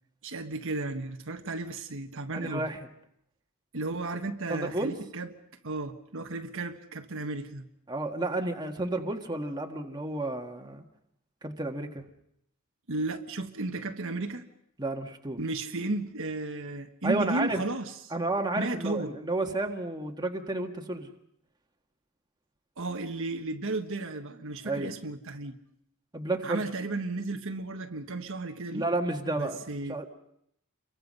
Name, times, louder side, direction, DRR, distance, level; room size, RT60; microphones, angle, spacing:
voice 1, 0.2-2.6 3.7-5.3 5.6-7.6 12.9-14.4 15.4-17.9 18.6-19.1 22.8-25.6 26.4-28.9 29.3-30.0, right 2 dB, 65° right, 5 dB, 1.4 m, -34 dB
voice 2, 2.3-2.9 4.5-5.0 7.9-10.8 11.4-12.0 14.8-15.4 17.0-17.6 18.1-21.1 24.6-25.0 26.1-26.6 28.7-29.6 29.9-30.1, right 2 dB, 20° right, 3 dB, 1.6 m, -31 dB
28.5 x 23.5 x 5.4 m, 0.72 s
head